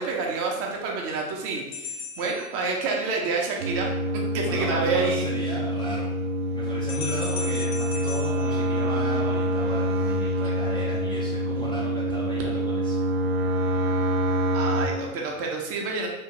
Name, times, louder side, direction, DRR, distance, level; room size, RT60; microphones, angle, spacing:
voice 1, 0.0-3.9 4.3-5.3 14.5-16.1, right 4 dB, 35° right, 0 dB, 0.7 m, -28 dB
sound 1, 1.7-3.3 6.9-9.4, left 4 dB, 70° left, 0.6 m, -38 dB
sound 2, 3.6-14.9, right 1 dB, 70° right, 0.6 m, -26 dB
voice 2, 4.5-6.1 6.5-13.0, equal, 10° left, -7 dB, 0.4 m, -36 dB
3.6 x 2.4 x 2.9 m, 1.0 s
hypercardioid pair, 95°, 43 cm